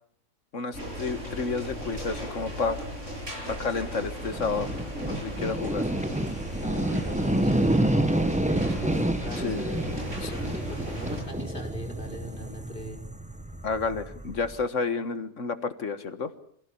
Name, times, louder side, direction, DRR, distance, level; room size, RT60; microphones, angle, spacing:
voice 1, 0.5-2.8 3.5-4.7 5.0-5.8 9.4-9.6 10.2-10.3 13.6-16.3, left 4 dB, 60° left, 11 dB, 1.8 m, -30 dB
sound 1, 0.7-11.2, equal, 55° right, 7.7 m, -36 dB
sound 2, 4.2-14.6, right 1 dB, 5° right, 0.9 m, -29 dB
voice 2, 6.6-13.0, equal, 35° left, 3 dB, 5.1 m, -40 dB
26.5 x 16.0 x 8.5 m, 0.66 s
omnidirectional pair, 1.5 m